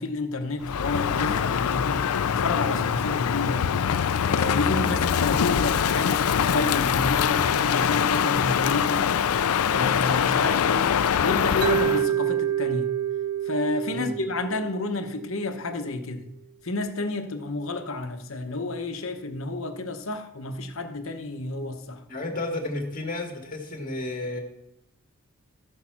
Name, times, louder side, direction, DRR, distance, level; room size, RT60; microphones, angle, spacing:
voice 1, 0.0-3.7 4.3-9.1 9.6-10.9 11.2-12.9 13.5-16.3 16.6-22.0, left 2 dB, 65° left, 1.0 m, -30 dB
Crow, 0.6-12.1, left 8 dB, 80° left, 0.4 m, -23 dB
Mallet percussion, 11.6-15.7, right 10 dB, 85° right, 0.4 m, -28 dB
voice 2, 22.1-24.4, left 2 dB, 40° left, 1.9 m, -32 dB
13.5 x 6.6 x 5.9 m
head